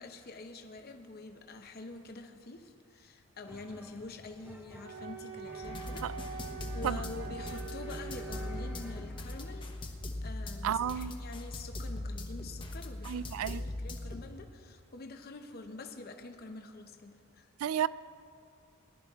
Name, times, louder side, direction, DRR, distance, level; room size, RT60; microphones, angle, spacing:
voice 1, 0.0-6.4 6.7-9.7 10.2-17.5, left 3 dB, 45° left, 5 dB, 0.7 m, -46 dB
sound 1, 3.4-9.7, right 1 dB, 10° right, 0.6 m, -53 dB
Wind instrument woodwind instrument, 4.8-8.7, right 6 dB, 60° right, 3.2 m, -44 dB
sound 2, 5.6-14.2, left 1 dB, 25° left, 0.9 m, -40 dB
voice 2, 10.6-11.1 13.0-13.6 17.6-17.9, right 9 dB, 85° right, 19 dB, 0.3 m, -32 dB
19.5 x 11.5 x 3.5 m, 2.3 s
head